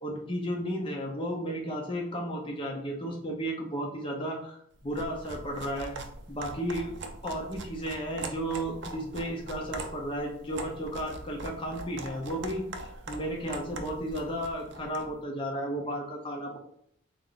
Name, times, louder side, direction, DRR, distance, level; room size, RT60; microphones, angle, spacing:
voice 1, 0.0-5.9 6.3-6.9 7.2-16.6, equal, 25° left, -1 dB, 0.7 m, -34 dB
sound 1, 4.8-15.1, right 2 dB, 55° right, 0.4 m, -42 dB
3.6 x 2.6 x 3.8 m, 0.69 s
head